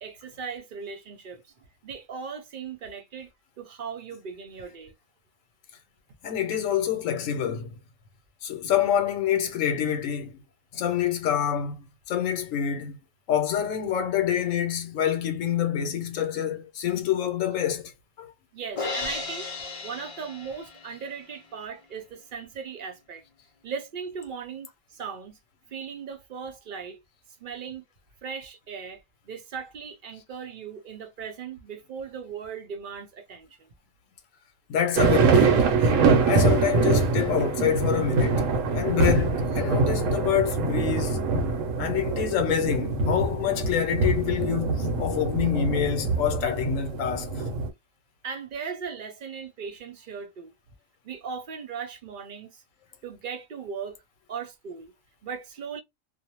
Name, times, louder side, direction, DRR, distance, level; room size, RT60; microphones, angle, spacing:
voice 1, 0.0-3.3 3.6-4.9 18.5-19.5 19.8-23.2 23.6-25.4 25.7-27.0 27.4-27.8 28.2-33.7 48.2-50.5 51.0-52.6 53.0-54.0 54.3-54.9 55.2-55.8, right 6 dB, 55° right, 0.6 m, -38 dB
voice 2, 6.2-7.8 8.4-10.4 10.7-13.0 13.3-17.9 18.2-18.3 34.7-35.7 36.3-41.2 41.8-47.3, left 9 dB, 85° left, 1.1 m, -27 dB
Crash cymbal, 18.8-21.0, left 3 dB, 45° left, 0.4 m, -34 dB
sound 1, 35.0-47.7, right 4 dB, 80° right, 1.0 m, -24 dB
2.6 x 2.0 x 2.9 m
omnidirectional pair, 1.3 m